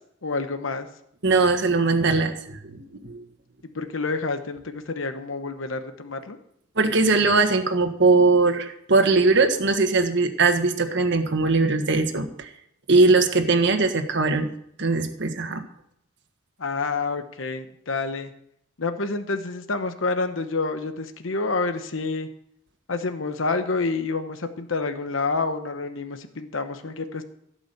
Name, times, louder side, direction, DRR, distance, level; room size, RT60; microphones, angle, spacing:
voice 1, 0.2-0.9 3.6-6.4 16.6-18.3 18.8-22.3 22.9-27.2, left 3 dB, 75° left, 8 dB, 1.0 m, -28 dB
voice 2, 1.2-3.2 6.8-12.5 12.9-14.5 14.8-15.6, right 3 dB, 60° right, 6 dB, 1.5 m, -20 dB
16.5 x 6.2 x 7.8 m, 0.74 s
head